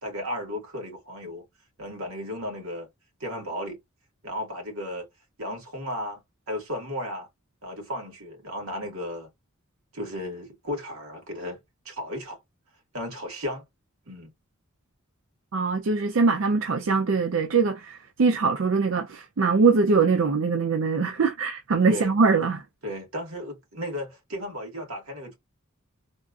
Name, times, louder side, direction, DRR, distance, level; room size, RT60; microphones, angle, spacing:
voice 1, 0.0-1.4 1.8-2.9 3.2-3.8 4.2-5.1 5.4-6.2 6.5-7.3 7.6-9.3 9.9-12.4 12.9-13.6 14.1-14.3 21.9-22.2 22.8-25.4, left 1 dB, 90° right, 1.9 m, -34 dB
voice 2, 15.5-22.6, right 4 dB, 70° right, 0.5 m, -22 dB
3.6 x 2.4 x 2.4 m
head